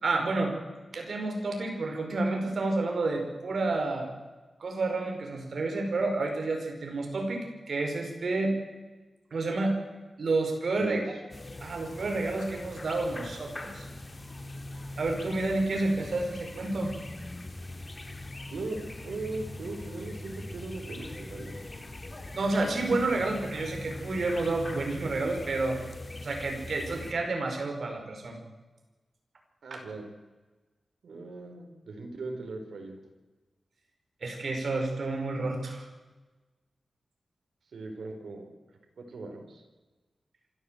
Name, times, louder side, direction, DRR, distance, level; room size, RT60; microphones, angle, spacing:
voice 1, 0.0-0.5 0.9-4.1 4.6-8.5 9.3-9.8 10.2-11.0 11.6-13.9 15.0-16.9 22.3-25.8 26.2-28.4 29.7-29.8 34.2-35.9, right 2 dB, 65° right, 3 dB, 5.3 m, -30 dB
sound 1, 11.3-27.1, left 2 dB, 30° left, 2.9 m, -42 dB
voice 2, 18.5-21.8 29.6-30.1 31.0-33.0 37.7-38.5 39.0-39.6, right 3 dB, 90° right, 4 dB, 4.2 m, -39 dB
26.0 x 13.5 x 7.9 m, 1.2 s
wide cardioid pair, 90°, 0 cm